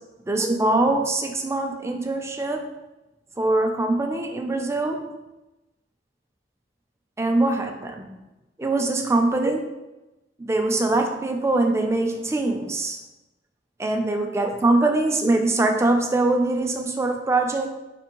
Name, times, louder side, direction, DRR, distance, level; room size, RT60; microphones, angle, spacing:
voice 1, 0.3-2.7 3.4-5.1 7.2-8.2 8.6-9.6 10.4-13.0 13.8-17.7, right 2 dB, 15° right, 4 dB, 0.4 m, -23 dB
4.9 x 3.4 x 3.0 m, 1.0 s
head